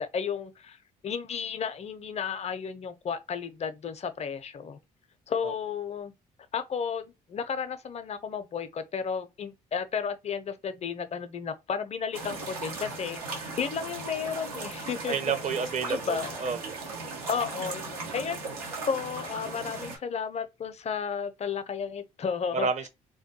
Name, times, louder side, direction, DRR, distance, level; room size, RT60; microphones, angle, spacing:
voice 1, 0.0-4.8 5.3-6.1 6.5-15.2 15.9-16.4 17.3-18.4 18.8-22.7, left 6 dB, 35° left, 0.5 m, -33 dB
sound 1, 12.1-20.0, right 3 dB, 85° right, 0.7 m, -38 dB
voice 2, 15.1-16.7 22.5-22.9, right 5 dB, 40° right, 0.6 m, -30 dB
2.2 x 2.2 x 2.8 m
hypercardioid pair, 50°, 19 cm